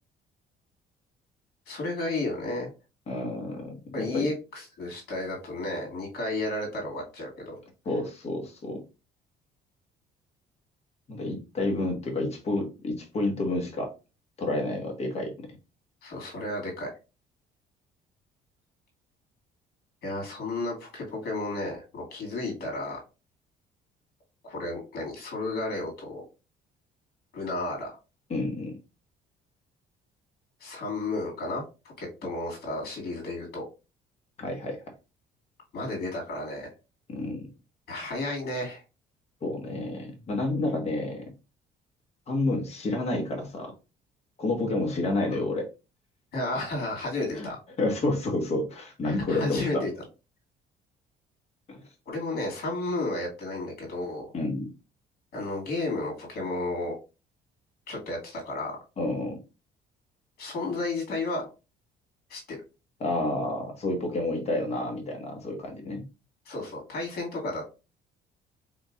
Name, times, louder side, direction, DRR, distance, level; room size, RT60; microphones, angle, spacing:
voice 1, 1.7-2.7 3.9-7.6 16.0-16.9 20.0-23.0 24.4-26.2 27.3-28.0 30.6-31.6 32.0-33.6 35.7-36.7 37.9-38.8 45.3-45.4 46.3-47.6 49.0-49.9 52.1-54.3 55.3-56.9 57.9-58.8 60.4-61.5 62.3-62.6 66.5-67.6, left 2 dB, 65° left, 0 dB, 2.3 m, -32 dB
voice 2, 3.1-4.3 7.8-8.8 11.1-13.9 14.4-15.3 28.3-28.8 34.4-34.8 37.1-37.4 39.4-41.3 42.3-43.7 44.4-45.7 47.4-47.5 47.8-49.8 51.7-51.8 54.3-54.7 59.0-59.4 63.0-66.0, left 2 dB, 40° left, 2 dB, 1.6 m, -29 dB
4.1 x 3.7 x 2.5 m, 0.29 s
cardioid pair, 110°, 17 cm